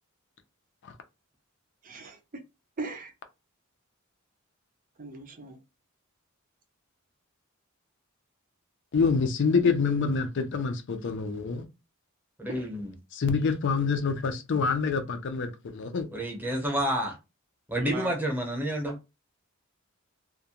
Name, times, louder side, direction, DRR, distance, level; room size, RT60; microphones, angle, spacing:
voice 1, 1.9-2.2 2.8-3.1 5.0-5.6 12.5-12.6 17.8-18.1, right 3 dB, 40° right, 0.5 m, -38 dB
voice 2, 8.9-11.7 13.1-16.1, left 5 dB, 60° left, 0.5 m, -26 dB
voice 3, 12.4-13.0 16.1-17.2 17.7-19.0, equal, 10° right, 0.8 m, -29 dB
2.3 x 2.2 x 2.8 m
head